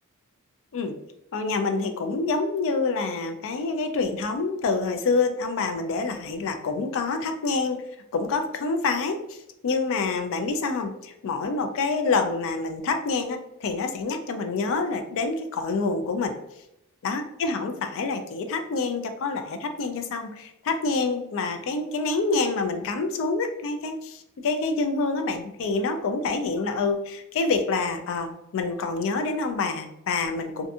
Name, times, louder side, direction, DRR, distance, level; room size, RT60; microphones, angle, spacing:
voice 1, 1.3-7.8 8.1-9.4 9.6-16.3 17.0-30.7, left 3 dB, 65° left, 7 dB, 0.4 m, -27 dB
2.5 x 2.2 x 2.7 m, 0.82 s
head